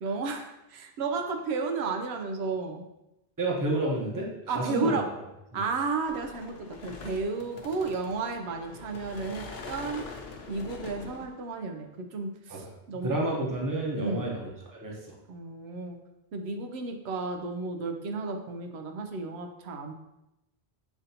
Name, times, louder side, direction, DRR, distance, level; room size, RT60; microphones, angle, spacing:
voice 1, 0.0-2.9 4.5-5.1 5.5-10.0 10.5-13.2 14.0-14.3 15.3-16.0 16.3-19.9, right 4 dB, 90° right, 5 dB, 0.8 m, -33 dB
voice 2, 3.4-5.0 5.5-5.6 12.5-12.7 13.0-14.4 14.8-15.1, right 2 dB, 20° right, -2 dB, 0.7 m, -30 dB
sound 1, 6.0-11.5, left 4 dB, 75° left, 0.8 m, -44 dB
7.0 x 2.6 x 2.7 m, 0.91 s
omnidirectional pair, 1.1 m